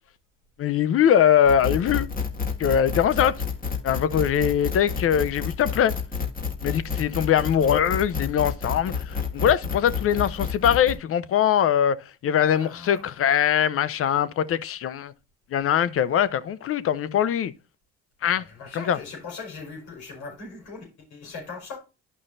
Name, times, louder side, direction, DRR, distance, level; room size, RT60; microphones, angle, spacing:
voice 1, 0.6-2.1 2.6-3.4 3.8-5.9 6.6-12.0 12.2-15.1 15.5-17.5 18.2-18.5 18.7-19.0, left 9 dB, 50° left, 0.7 m, -22 dB
sound 1, 1.5-11.0, left 6 dB, 30° left, 1.8 m, -30 dB
voice 2, 12.4-13.1 18.3-21.8, left 4 dB, 75° left, 4.6 m, -40 dB
11.0 x 5.5 x 2.5 m
supercardioid pair, 70°, 29 cm